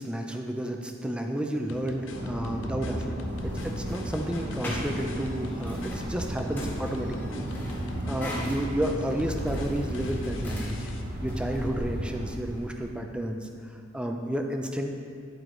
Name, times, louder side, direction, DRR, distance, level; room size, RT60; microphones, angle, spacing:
voice 1, 0.0-3.2 3.4-7.4 8.1-10.9 11.2-13.5 13.9-14.9, right 1 dB, 5° right, 3 dB, 0.4 m, -31 dB
sound 1, 1.7-11.0, left 3 dB, 65° left, 0.6 m, -44 dB
sound 2, 2.1-12.3, right 1 dB, 50° right, 0.8 m, -34 dB
sound 3, 3.2-12.9, left 1 dB, 10° left, 1.4 m, -41 dB
9.9 x 4.6 x 3.8 m, 2.3 s
head